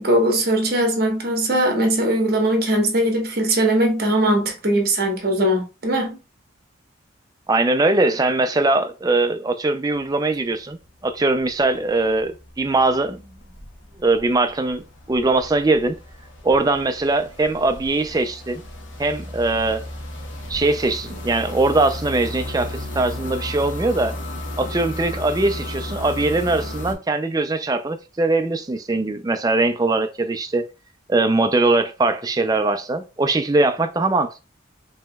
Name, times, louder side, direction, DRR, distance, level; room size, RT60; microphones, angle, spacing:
voice 1, 0.0-6.2, right 1 dB, 50° right, 1.2 m, -20 dB
voice 2, 7.5-10.8 11.0-13.3 14.0-15.9 16.4-18.6 19.0-19.8 20.5-24.2 24.6-30.7 31.1-34.3, right 2 dB, 20° right, 0.4 m, -21 dB
sound 1, 10.0-10.5 10.7-26.9, left 1 dB, 65° left, 1.1 m, -34 dB
5.4 x 2.9 x 2.2 m
head